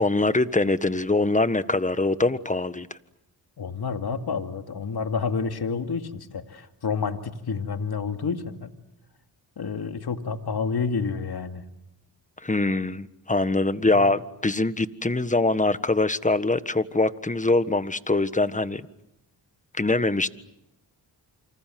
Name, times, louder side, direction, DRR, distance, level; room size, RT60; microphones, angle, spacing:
voice 1, 0.0-2.9 12.4-18.8 19.8-20.3, left 2 dB, 15° left, 13 dB, 1.5 m, -23 dB
voice 2, 3.6-8.7 9.6-11.6 13.9-14.0, left 5 dB, 60° left, 6 dB, 2.5 m, -29 dB
28.0 x 26.0 x 7.8 m, 0.88 s
cardioid pair, 55°, 43 cm